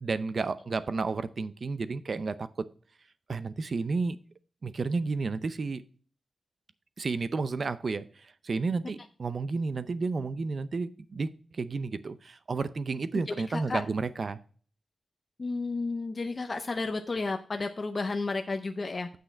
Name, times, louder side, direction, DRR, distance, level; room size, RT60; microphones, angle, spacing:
voice 1, 0.0-2.7 3.3-4.2 4.6-5.8 7.0-14.4, right 4 dB, 50° right, 14 dB, 0.5 m, -32 dB
voice 2, 13.5-13.8 15.4-19.1, left 3 dB, 35° left, 5 dB, 0.6 m, -32 dB
8.1 x 6.5 x 4.4 m, 0.43 s
wide cardioid pair, 135°, 0 cm